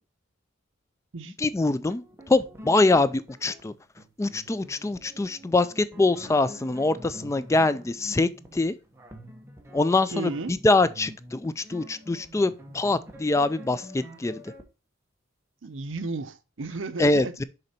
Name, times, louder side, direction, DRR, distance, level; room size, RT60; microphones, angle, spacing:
voice 1, 1.4-3.7 4.2-8.7 9.7-14.4 17.0-17.4, left 2 dB, 15° left, 0.3 m, -24 dB
sound 1, 1.9-14.6, equal, 15° right, 1.2 m, -47 dB
voice 2, 10.1-10.5 15.6-17.3, right 3 dB, 70° right, 0.7 m, -33 dB
6.6 x 4.3 x 4.2 m
head